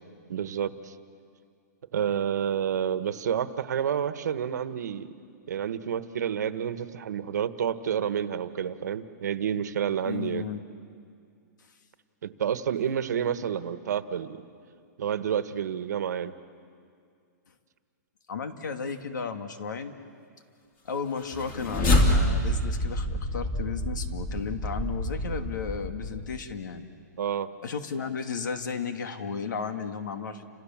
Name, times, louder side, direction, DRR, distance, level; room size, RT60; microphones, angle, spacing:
voice 1, 0.3-0.9 1.9-5.1 5.5-10.5 12.2-14.3 15.0-16.3 27.2-27.5, right 8 dB, 65° right, 11 dB, 1.3 m, -29 dB
voice 2, 10.0-10.6 18.3-19.9 20.8-26.9 27.6-30.4, left 6 dB, 90° left, 6 dB, 2.4 m, -34 dB
sound 1, 21.2-26.5, left 1 dB, 20° left, 2.5 m, -27 dB
30.0 x 26.5 x 7.4 m, 2.3 s
hypercardioid pair, 175°, 10 cm